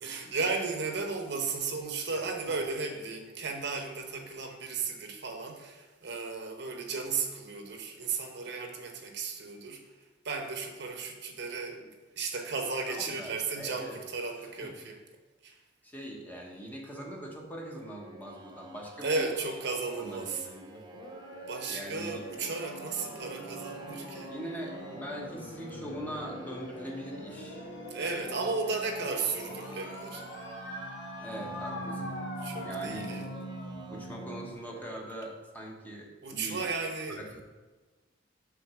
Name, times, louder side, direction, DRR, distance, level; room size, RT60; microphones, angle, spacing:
voice 1, 0.0-9.8 10.2-11.9 12.2-15.0 15.4-15.6 19.0-20.5 21.5-24.3 27.9-30.2 32.4-33.3 36.2-37.2, right 4 dB, 65° right, 3 dB, 0.9 m, -34 dB
voice 2, 12.9-14.0 14.6-14.7 15.8-19.3 20.0-20.9 21.7-22.2 24.3-27.7 31.2-32.2 32.6-33.1 33.9-36.6 37.1-37.4, equal, 10° left, -1 dB, 1.0 m, -42 dB
sound 1, 17.8-34.9, right 2 dB, 25° right, 0.6 m, -50 dB
sound 2, 20.9-34.5, equal, 70° left, 1.3 m, -42 dB
6.0 x 3.9 x 6.1 m, 1.2 s
head